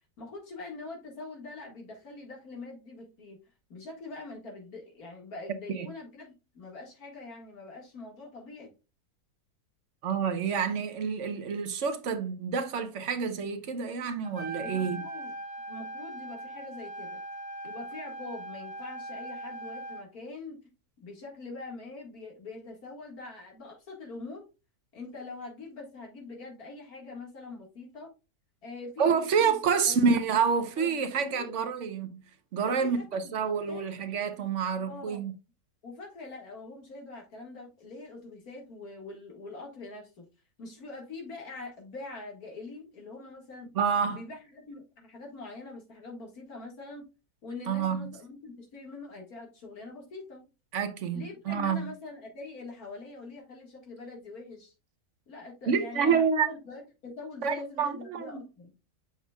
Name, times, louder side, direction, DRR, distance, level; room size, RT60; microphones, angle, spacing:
voice 1, 0.2-3.4 3.7-8.7 14.6-15.3 15.7-17.2 17.6-20.7 21.0-24.5 24.9-28.1 28.6-29.6 29.8-30.0 30.8-31.6 32.7-33.4 33.7-33.8 34.9-35.3 35.8-40.2 40.6-43.7 44.1-47.1 47.4-50.4 51.1-54.7 55.3-58.7, left 3 dB, 70° left, 2.3 m, -44 dB
voice 2, 10.0-15.0 29.0-32.2 32.5-35.3 43.7-44.2 47.7-48.1 50.7-51.9 55.7-56.5 57.4-58.4, right 6 dB, 55° right, 1.1 m, -28 dB
Trumpet, 14.2-20.0, right 2 dB, 50° left, 2.1 m, -40 dB
7.1 x 5.8 x 2.3 m
omnidirectional pair, 1.6 m